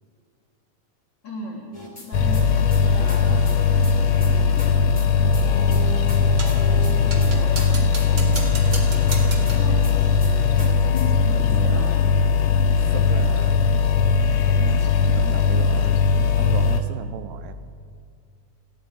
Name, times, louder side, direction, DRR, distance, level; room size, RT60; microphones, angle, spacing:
voice 1, 1.2-4.2 5.1-7.7 9.3-9.9 10.8-12.0, left 1 dB, 40° left, -2 dB, 2.1 m, -37 dB
sound 1, 1.7-2.1 2.3-4.7 5.0-5.1 5.3-7.7 8.0-8.1 8.3-11.1, equal, 10° left, 2.1 m, -34 dB
sound 2, 2.1-16.8, left 5 dB, 70° left, 1.7 m, -19 dB
sound 3, 6.4-6.7 7.1-9.7, right 3 dB, 35° right, 1.5 m, -34 dB
voice 2, 8.1-8.5 11.4-12.0 12.9-13.7 14.4-17.5, right 10 dB, 80° right, 10 dB, 2.1 m, -36 dB
30.0 x 10.0 x 4.8 m, 2.1 s
omnidirectional pair, 4.1 m